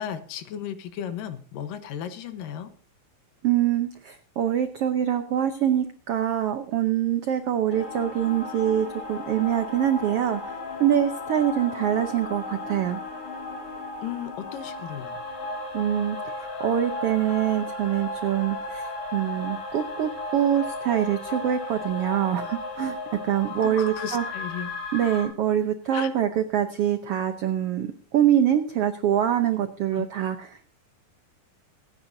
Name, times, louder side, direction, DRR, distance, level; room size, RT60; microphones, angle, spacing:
voice 1, 0.0-2.7 14.0-15.2 23.4-24.7 25.9-26.1 29.9-30.1, left 9 dB, 80° left, 10 dB, 2.8 m, -35 dB
voice 2, 3.4-10.4 10.8-13.0 15.7-16.2 16.6-23.0 23.2-24.2 24.9-27.9 28.1-30.4, right 10 dB, 80° right, 8 dB, 1.3 m, -24 dB
sound 1, 7.7-25.2, left 2 dB, 65° left, 5.7 m, -35 dB
25.0 x 9.9 x 2.7 m, 0.43 s
omnidirectional pair, 3.8 m